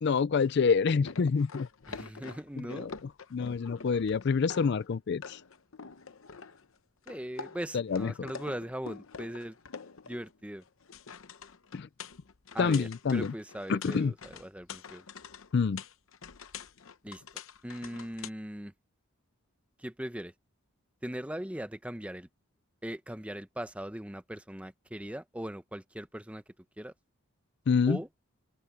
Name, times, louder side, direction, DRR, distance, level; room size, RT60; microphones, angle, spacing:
voice 1, 0.0-1.7 2.7-2.9 3.3-5.4 7.7-8.1 11.7-11.9 12.6-13.3 13.7-14.1 15.5-15.8 27.7-28.0, left 5 dB, 55° left, 0.4 m, -27 dB
sound 1, 0.9-4.9 5.2-6.7 7.1-10.4 10.6-18.3, left 5 dB, 70° left, 0.8 m, -46 dB
voice 2, 1.9-2.9 7.1-9.6 10.1-10.6 12.5-15.1 17.0-17.2 17.6-18.7 19.8-20.3 21.0-22.3 22.8-26.4 26.8-26.9 27.9-28.1, equal, 5° right, 0.8 m, -39 dB
open air
head